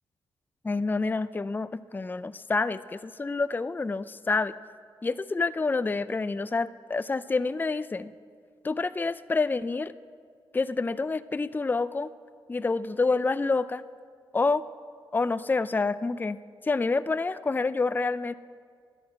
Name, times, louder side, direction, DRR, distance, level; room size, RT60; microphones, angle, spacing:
voice 1, 0.6-4.5 5.0-8.1 8.6-9.9 10.5-12.1 12.5-13.8 14.3-14.6 15.1-16.4 16.6-18.3, left 3 dB, 20° left, 15 dB, 0.4 m, -28 dB
11.0 x 10.5 x 7.4 m, 2.1 s
cardioid pair, 70°, 9 cm